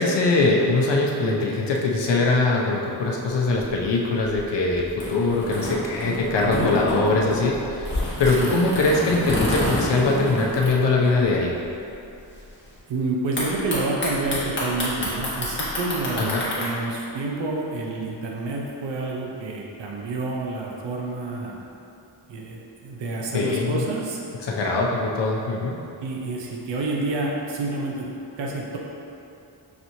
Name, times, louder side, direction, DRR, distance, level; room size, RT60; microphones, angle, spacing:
voice 1, 0.0-11.5 16.2-16.4 23.3-23.9 24.4-25.7, left 3 dB, 65° left, -2 dB, 0.7 m, -22 dB
sound 1, 3.5-11.4 11.6-11.7 11.9-12.4 13.4-16.7, left 1 dB, 25° left, 1.1 m, -28 dB
voice 2, 6.5-6.8 8.3-8.6 12.9-21.5 22.3-24.2 26.0-28.1 28.4-28.8, right 2 dB, 70° right, -2 dB, 0.6 m, -29 dB
6.0 x 2.9 x 2.7 m, 2.7 s
wide cardioid pair, 130°, 45 cm